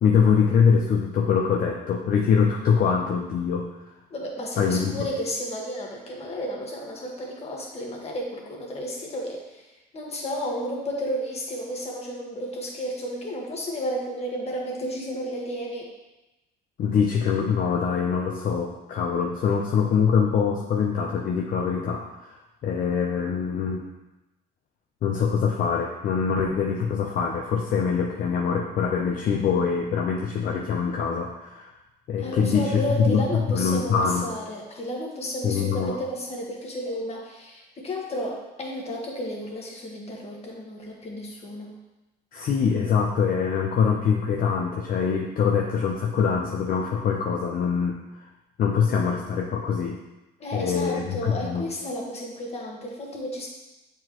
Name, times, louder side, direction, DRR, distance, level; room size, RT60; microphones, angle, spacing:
voice 1, 0.0-3.7 4.6-4.9 16.8-22.3 22.6-23.9 25.0-31.7 32.1-33.2 33.5-34.3 35.4-36.0 42.3-48.0 48.6-50.0 50.5-51.7, left 6 dB, 55° left, 0 dB, 0.7 m, -24 dB
voice 2, 4.1-9.6 9.9-15.9 32.2-41.7 50.4-53.5, equal, 40° left, -1 dB, 1.5 m, -32 dB
7.6 x 4.6 x 3.0 m, 1.0 s
cardioid pair, 110°, 17 cm